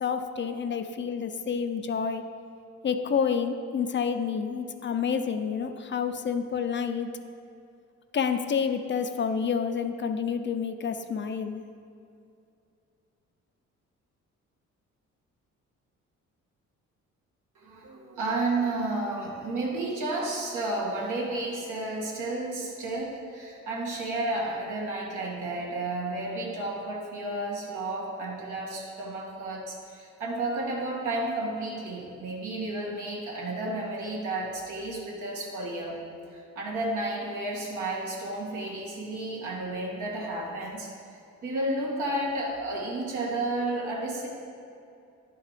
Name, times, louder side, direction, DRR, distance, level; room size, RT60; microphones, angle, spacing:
voice 1, 0.0-2.2 2.8-7.1 8.1-11.6, left 6 dB, 40° left, 8 dB, 0.5 m, -29 dB
voice 2, 17.6-36.0 36.3-40.9 41.4-44.3, right 2 dB, 85° right, -3 dB, 1.9 m, -32 dB
10.5 x 4.6 x 5.0 m, 2.5 s
cardioid pair, 90°, 30 cm